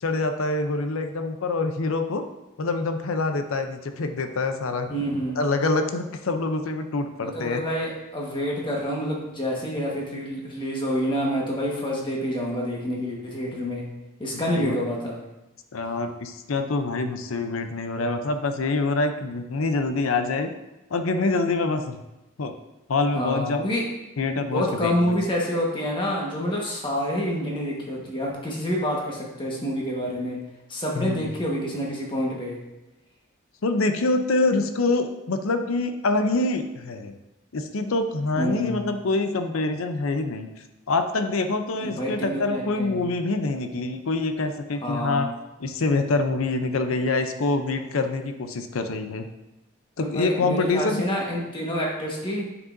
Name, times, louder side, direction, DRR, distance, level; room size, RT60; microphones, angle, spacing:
voice 1, 0.0-2.2 2.6-4.9 5.4-7.6 14.5-14.8 15.7-20.5 20.9-22.0 22.4-22.5 22.9-23.7 24.2-25.2 31.0-31.3 33.6-37.1 37.5-40.5 40.9-45.3 45.6-49.3 50.0-51.0, left 3 dB, 90° left, 7 dB, 0.6 m, -25 dB
voice 2, 4.9-5.4 7.2-13.9 14.2-15.2 23.1-23.8 24.5-30.4 30.7-32.6 38.3-38.9 41.8-43.0 44.8-45.3 50.0-52.5, equal, 25° left, -3 dB, 1.4 m, -27 dB
7.7 x 6.1 x 2.6 m, 0.99 s
head